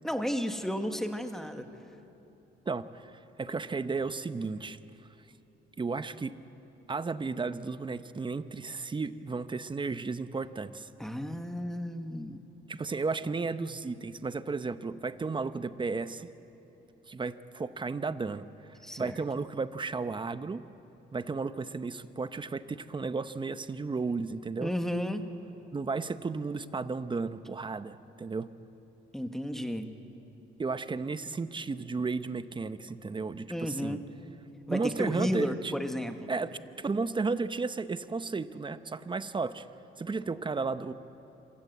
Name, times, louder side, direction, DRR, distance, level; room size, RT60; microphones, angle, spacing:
voice 1, 0.0-1.7 11.0-12.4 18.8-19.2 24.6-25.3 29.1-30.0 33.5-34.0 34.7-36.3, equal, ahead, 7 dB, 1.5 m, -33 dB
voice 2, 2.7-3.1 3.4-4.8 5.8-6.3 6.9-10.9 12.7-16.3 17.1-18.5 19.0-20.6 21.1-24.7 25.7-28.5 30.6-34.0 34.7-35.7 36.3-39.6 40.0-40.9, right 4 dB, 25° right, 13 dB, 0.8 m, -33 dB
26.5 x 16.0 x 8.0 m, 2.9 s
cardioid pair, 90°, 20 cm